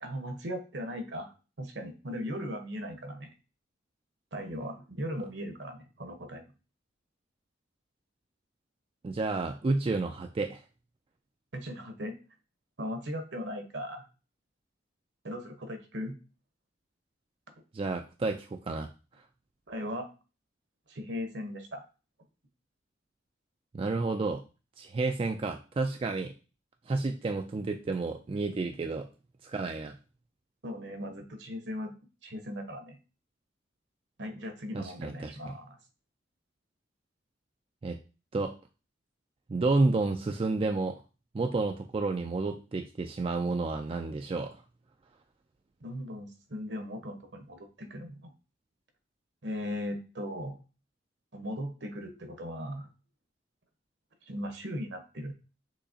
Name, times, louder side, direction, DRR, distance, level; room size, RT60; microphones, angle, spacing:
voice 1, 0.0-3.3 4.3-6.5 11.5-12.1 12.8-14.0 15.2-16.2 19.7-20.1 20.9-21.8 30.6-31.9 32.2-33.0 34.2-35.8 45.8-48.3 49.4-50.6 51.3-52.9 54.3-55.3, equal, 65° right, 6 dB, 1.0 m, -38 dB
voice 2, 9.0-10.6 17.7-18.9 23.7-24.4 24.8-26.3 26.9-29.1 29.4-30.0 34.7-35.5 37.8-38.0 38.3-38.5 39.5-41.0 41.3-44.6, right 3 dB, 30° right, 5 dB, 0.3 m, -30 dB
6.4 x 2.9 x 2.7 m, 0.32 s
head